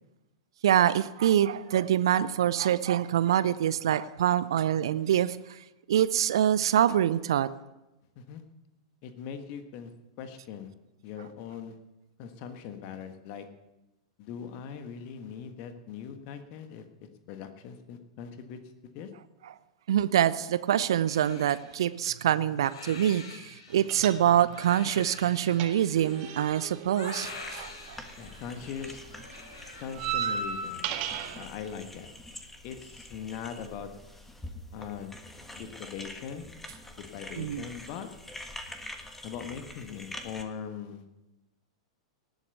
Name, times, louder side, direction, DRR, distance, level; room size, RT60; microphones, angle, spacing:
voice 1, 0.6-5.6 5.9-7.5 19.9-28.0 37.4-37.6, right 10 dB, 60° right, 0.5 m, -25 dB
voice 2, 9.0-9.9 10.2-10.7 11.0-11.7 12.2-13.4 14.2-18.6 18.9-19.1 21.3-21.4 28.2-29.0 29.8-32.1 32.6-33.9 34.7-35.1 35.5-36.5 37.0-38.1 39.2-41.0, left 7 dB, 45° left, 1.5 m, -41 dB
Crying sobbing, 21.1-30.3, left 3 dB, 60° left, 3.1 m, -46 dB
sound 1, 23.9-24.7 24.9-28.3 28.6-31.4, right 7 dB, 40° right, 1.7 m, -35 dB
sound 2, 27.3-40.4, left 1 dB, 5° left, 1.5 m, -46 dB
19.0 x 8.1 x 6.8 m
figure-of-eight pair, 95°, 3 cm